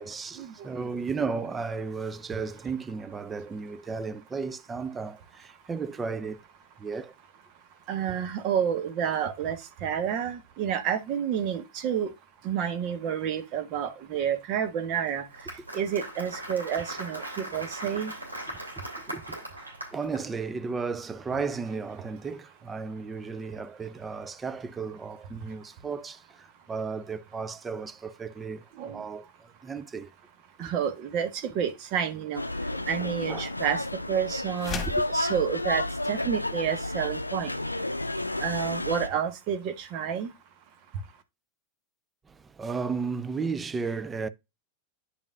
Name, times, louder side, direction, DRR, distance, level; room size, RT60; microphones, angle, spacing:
voice 1, 0.0-6.4 6.8-7.1 8.1-8.2 16.7-16.8 18.5-18.6 19.0-30.1 30.6-30.7 32.7-33.5 34.9-35.0 42.3-44.3, right 5 dB, 15° right, 0.6 m, -34 dB
voice 2, 7.9-9.6 9.8-12.1 12.4-15.2 15.7-18.1 28.8-28.9 30.6-31.3 31.5-32.4 32.9-33.8 34.1-34.8 35.1-35.8 36.1-37.5 38.4-40.3, right 8 dB, 40° right, 1.3 m, -29 dB
Applause, 15.1-20.2, right 1 dB, 85° right, 3.1 m, -39 dB
sound 1, 32.3-39.1, left 1 dB, 85° left, 0.5 m, -31 dB
sound 2, 34.6-35.1, left 6 dB, 20° left, 2.3 m, -34 dB
9.9 x 5.3 x 2.5 m
figure-of-eight pair, 90°, 0 cm